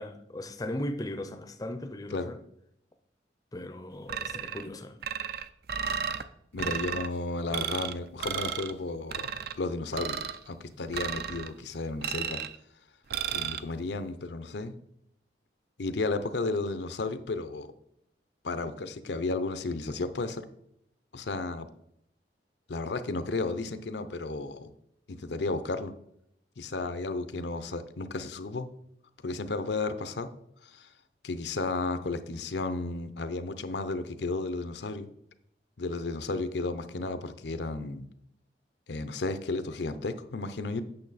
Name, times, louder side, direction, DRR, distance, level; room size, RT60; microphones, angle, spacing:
voice 1, 0.0-2.4 3.5-5.0, left 1 dB, 20° left, 8 dB, 0.5 m, -37 dB
sound 1, 4.1-4.7 5.0-6.2 6.6-7.1 7.5-7.9 8.2-8.7 9.1-9.6 9.9-10.4 10.9-11.5 12.0-12.6 13.1-13.6, right 7 dB, 60° right, 0.5 m, -33 dB
voice 2, 6.5-10.2 10.4-12.4 13.3-14.7 15.8-17.7 18.4-20.4 21.1-21.7 22.7-24.7 25.1-25.9 26.6-28.7 29.2-30.3 30.6-30.9 31.2-35.1 35.8-38.1 38.9-40.8, left 3 dB, 75° left, 11 dB, 0.6 m, -33 dB
8.7 x 6.4 x 4.0 m, 0.75 s
head